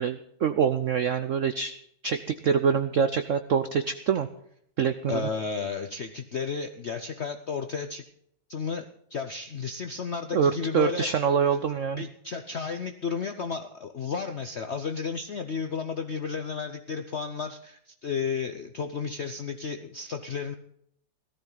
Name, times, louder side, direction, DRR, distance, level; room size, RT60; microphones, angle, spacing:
voice 1, 0.0-1.8 2.0-4.3 4.8-5.3 10.3-12.0, right 7 dB, 75° right, 10 dB, 0.7 m, -25 dB
voice 2, 5.1-8.0 8.5-11.1 12.0-20.5, left 5 dB, 65° left, 7 dB, 0.6 m, -33 dB
17.0 x 13.5 x 3.9 m, 0.72 s
omnidirectional pair, 2.1 m